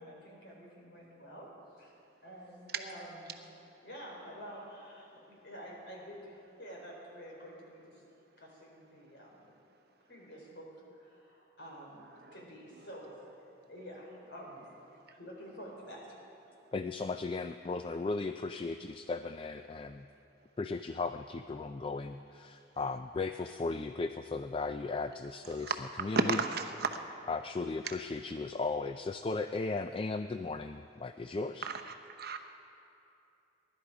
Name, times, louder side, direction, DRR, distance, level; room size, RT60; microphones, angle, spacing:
voice 1, 0.0-1.9 2.2-3.4 3.8-8.0 8.4-9.4 10.0-13.2 13.6-14.7 15.1-16.2, equal, 60° left, -2 dB, 4.3 m, -49 dB
voice 2, 16.7-20.1 20.6-26.4 27.3-31.7, left 3 dB, 25° left, 9 dB, 0.3 m, -36 dB
voice 3, 26.1-27.0 31.6-31.8 32.1-32.4, right 4 dB, 50° right, 6 dB, 0.9 m, -32 dB
23.0 x 11.5 x 4.9 m, 2.8 s
head